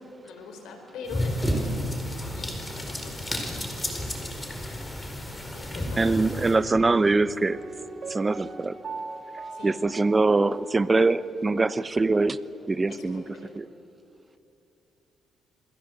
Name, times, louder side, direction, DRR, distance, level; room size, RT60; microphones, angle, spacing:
voice 1, 0.2-1.9 2.3-4.4 5.5-7.3 9.5-9.8 12.9-13.6, left 3 dB, 85° left, 4 dB, 4.7 m, -43 dB
sound 1, 1.1-6.6, equal, 15° left, 4.4 m, -31 dB
voice 2, 6.0-7.6 8.1-8.8 9.6-12.4 12.7-13.2 13.5-13.7, right 3 dB, 25° right, 15 dB, 0.9 m, -23 dB
Piano, 7.5-11.3 11.5-11.6, right 4 dB, 50° right, 2.8 m, -40 dB
28.0 x 21.5 x 8.0 m, 2.9 s
cardioid pair, 90°, 0 cm